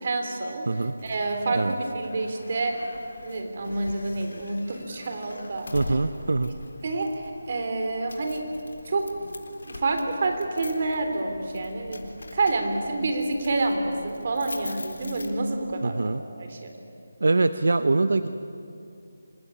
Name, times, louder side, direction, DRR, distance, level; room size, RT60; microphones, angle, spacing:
voice 1, 0.0-0.7 1.0-2.7 3.2-6.0 6.8-8.4 8.9-9.1 9.6-12.0 12.3-16.7, right 2 dB, 35° right, 5 dB, 3.5 m, -28 dB
sound 1, 0.8-15.8, left 2 dB, 75° left, 3.8 m, -43 dB
voice 2, 5.7-6.5 15.8-16.2 17.2-18.3, right 3 dB, 70° right, 11 dB, 1.0 m, -23 dB
27.0 x 20.0 x 9.9 m, 2.6 s
figure-of-eight pair, 175°, 0 cm